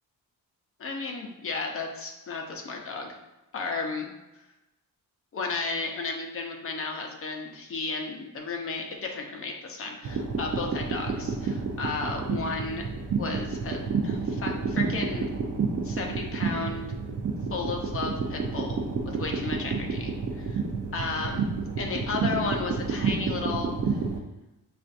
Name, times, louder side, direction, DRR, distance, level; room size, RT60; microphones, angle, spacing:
voice 1, 0.8-3.2 3.5-4.1 5.3-12.8 13.2-15.3 15.8-16.9 17.5-18.8 19.1-20.6 20.9-21.4 21.8-24.0, left 4 dB, 40° left, 1 dB, 0.7 m, -33 dB
sound 1, 10.0-24.2, right 4 dB, 45° right, 0.5 m, -30 dB
7.4 x 2.5 x 2.5 m, 1.0 s
wide cardioid pair, 175°, 34 cm